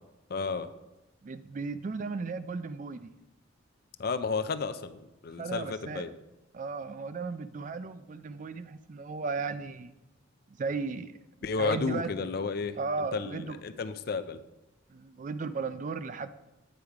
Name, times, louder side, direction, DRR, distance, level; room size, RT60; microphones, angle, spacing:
voice 1, 0.3-0.7 4.0-6.1 11.4-14.4, left 4 dB, 50° left, 11 dB, 0.4 m, -32 dB
voice 2, 1.2-3.1 5.4-6.0 6.5-9.9 10.6-11.2 11.6-12.1 12.8-13.6 14.9-16.3, right 4 dB, 40° right, 12 dB, 0.3 m, -35 dB
8.7 x 5.1 x 4.6 m, 0.96 s
head